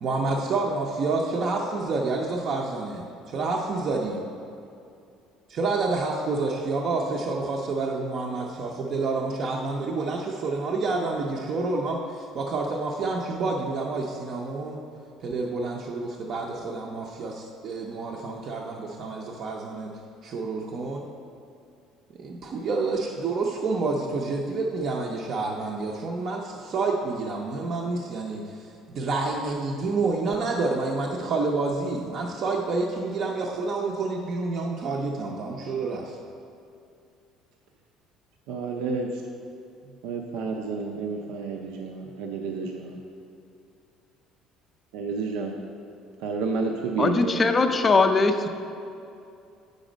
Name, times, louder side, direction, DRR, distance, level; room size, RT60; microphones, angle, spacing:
voice 1, 0.0-4.2 5.5-14.8 15.2-19.9 20.2-21.0 22.2-36.2, right 3 dB, 40° right, -1 dB, 0.5 m, -28 dB
voice 2, 38.5-39.1 40.0-43.0 44.9-45.5 46.2-47.5, right 4 dB, 85° right, 2 dB, 0.5 m, -30 dB
voice 3, 47.0-48.5, left 3 dB, 20° left, 7 dB, 0.4 m, -21 dB
8.2 x 5.1 x 5.0 m, 2.5 s
cardioid pair, 165°, 0 cm